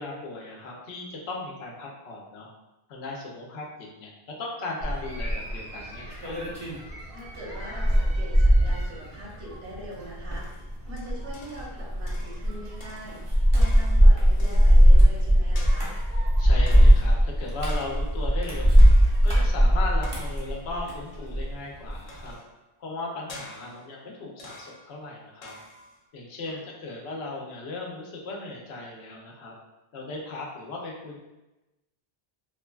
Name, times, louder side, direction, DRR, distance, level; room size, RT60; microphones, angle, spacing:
voice 1, 0.0-2.5 2.9-4.1 4.4-6.4 16.4-18.9 19.2-22.4 22.8-25.5 26.1-29.5 29.9-31.2, left 2 dB, 85° left, -1 dB, 0.9 m, -37 dB
sound 1, 4.8-21.5 21.9-22.3, equal, 30° right, 0.6 m, -20 dB
voice 2, 7.1-10.5 10.9-16.0 26.4-26.6, equal, 80° right, -4 dB, 1.0 m, -42 dB
sound 2, 10.3-11.8 12.1-12.5 12.8-15.1 15.5-16.2 16.7-17.2 17.7-18.3 18.8-19.4 20.0-20.7 22.1-22.6 23.3-24.0 24.4-25.0 25.4-26.0, left 1 dB, 55° left, 0.4 m, -47 dB
3.1 x 2.2 x 2.2 m, 1.0 s
omnidirectional pair, 1.0 m